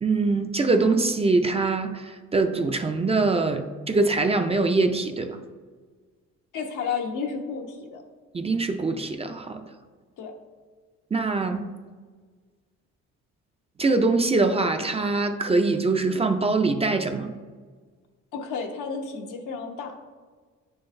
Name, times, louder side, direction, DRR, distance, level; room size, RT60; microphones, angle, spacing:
voice 1, 0.0-5.4 8.3-9.6 11.1-11.6 13.8-17.3, right 3 dB, 20° right, 6 dB, 0.4 m, -23 dB
voice 2, 6.5-8.0 10.2-10.3 18.3-20.1, left 5 dB, 85° left, 2 dB, 0.9 m, -32 dB
9.5 x 3.8 x 2.6 m, 1.5 s
cardioid pair, 90°, 30 cm